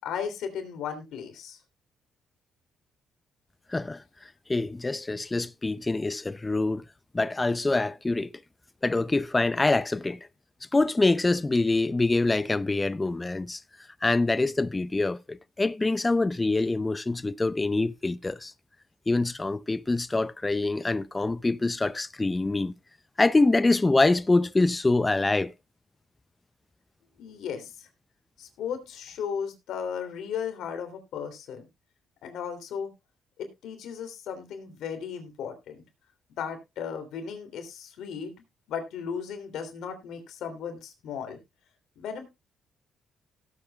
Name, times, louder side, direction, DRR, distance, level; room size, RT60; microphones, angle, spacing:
voice 1, 0.0-1.6 27.2-27.9 28.4-31.6 32.2-32.9 33.4-35.8 36.4-38.3 38.7-41.4 42.0-42.3, left 7 dB, 80° left, 3.0 m, -35 dB
voice 2, 4.5-6.8 7.1-8.3 8.8-10.2 10.7-13.6 14.0-18.5 19.1-22.7 23.2-25.5, left 2 dB, 20° left, 0.6 m, -25 dB
17.5 x 8.4 x 2.4 m
cardioid pair, 90°, 0 cm